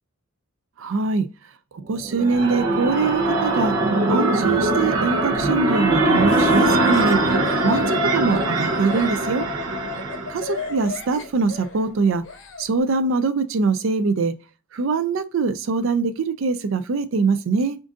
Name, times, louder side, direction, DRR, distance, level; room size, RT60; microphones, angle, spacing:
voice 1, 0.8-1.3 1.7-3.7 4.1-7.2 7.6-9.5 10.3-12.2 12.6-14.4 14.7-17.8, right 4 dB, 65° right, 0.4 m, -23 dB
sound 1, 1.9-10.7, right 2 dB, 85° right, 0.8 m, -21 dB
Laughter, 6.3-12.6, left 5 dB, 60° left, 0.7 m, -36 dB
3.7 x 2.5 x 3.6 m
head